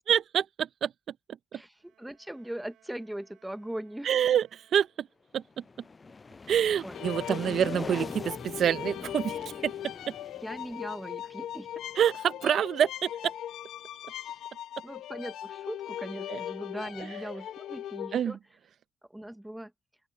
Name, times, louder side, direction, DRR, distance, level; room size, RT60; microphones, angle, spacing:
voice 1, 0.1-0.9 1.5-1.6 4.0-5.1 5.3-5.6 6.5-10.2 12.0-13.3 16.3-16.4 18.1-18.3, right 9 dB, 65° right, 0.5 m, -27 dB
voice 2, 1.5-4.1 6.8-7.0 7.3-7.6 10.4-11.7 14.2-14.4 14.8-18.4 19.1-19.7, right 1 dB, 5° right, 0.7 m, -40 dB
sound 1, 1.8-5.6, right 12 dB, 80° right, 4.5 m, -66 dB
sound 2, 5.4-12.1, left 4 dB, 30° left, 0.4 m, -43 dB
sound 3, 6.9-18.2, left 11 dB, 80° left, 0.7 m, -39 dB
open air
cardioid pair, 90°, 0 cm